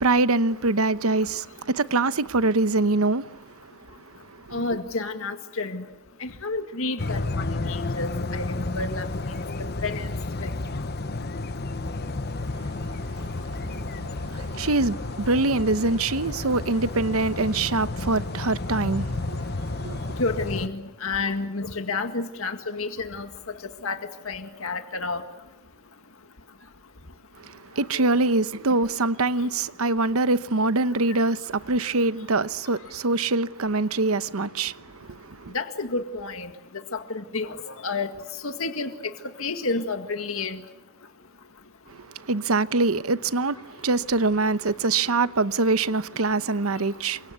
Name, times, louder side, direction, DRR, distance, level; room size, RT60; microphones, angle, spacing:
voice 1, 0.0-3.2 14.5-19.4 19.8-20.0 27.8-34.7 35.3-35.5 42.3-47.2, right 3 dB, 85° right, 1.0 m, -24 dB
voice 2, 4.5-5.8 6.2-9.1 9.8-10.1 10.4-10.5 20.2-23.3 23.8-24.0 24.3-25.2 27.9-28.1 35.5-36.5 36.9-38.1 38.4-39.1 39.4-40.6, left 3 dB, 75° left, 1.9 m, -30 dB
sound 1, 7.0-20.7, left 2 dB, 50° left, 1.1 m, -31 dB
29.0 x 25.0 x 8.2 m
head